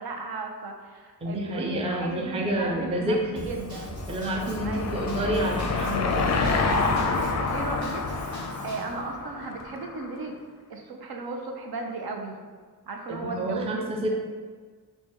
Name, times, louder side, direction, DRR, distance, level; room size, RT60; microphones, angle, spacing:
voice 1, 0.0-3.9 4.6-5.1 6.6-8.0 8.6-10.4 10.7-12.4 12.9-14.1, right 3 dB, 65° right, 2 dB, 0.6 m, -36 dB
voice 2, 1.2-3.5 4.1-6.6 13.1-14.2, right 1 dB, 15° right, 1 dB, 0.4 m, -29 dB
Car passing by / Engine, 3.2-10.1, left 3 dB, 45° left, 0.4 m, -28 dB
Drum kit / Drum, 3.4-8.9, right 1 dB, 45° right, 1.4 m, -40 dB
4.5 x 2.3 x 4.3 m, 1.5 s
wide cardioid pair, 145°, 39 cm